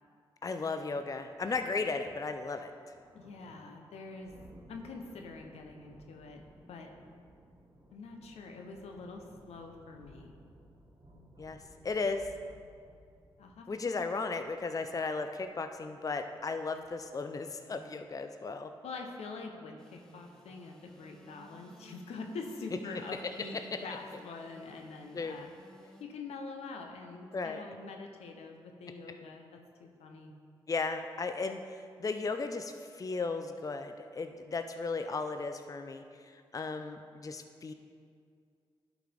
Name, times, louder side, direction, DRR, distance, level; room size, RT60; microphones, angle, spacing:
voice 1, 0.4-2.7 11.4-11.6 11.8-12.3 13.7-18.7 23.5-23.8 25.1-25.4 27.3-27.6 30.7-37.7, left 4 dB, 35° left, 7 dB, 0.5 m, -35 dB
sound 1, 1.3-18.2, right 1 dB, 45° right, 1.8 m, -59 dB
voice 2, 3.1-4.3 4.7-6.4 6.7-6.9 7.9-10.4 13.4-14.0 18.8-25.5 26.0-30.3, left 3 dB, 80° left, 3 dB, 0.8 m, -45 dB
Engine / Sawing, 19.8-26.0, equal, 5° left, 1.1 m, -57 dB
11.0 x 4.9 x 3.5 m, 2.2 s
supercardioid pair, 50°, 11 cm